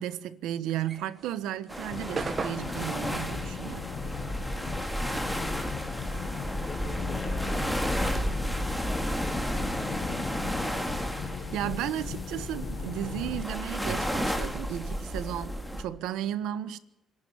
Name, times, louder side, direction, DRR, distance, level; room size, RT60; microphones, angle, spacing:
voice 1, 0.0-3.8 11.5-16.8, right 11 dB, 90° right, 1.2 m, -34 dB
sound 1, 0.7-5.5 5.7-7.7, right 5 dB, 40° right, 1.8 m, -39 dB
sound 2, 1.7-15.8, equal, ahead, 2.6 m, -32 dB
sound 3, 1.9-13.4, left 8 dB, 60° left, 1.3 m, -39 dB
voice 2, 5.3-5.9 6.3-8.2 8.8-11.3, left 3 dB, 30° left, 3.2 m, -45 dB
26.5 x 11.5 x 9.6 m
cardioid pair, 110°, 0 cm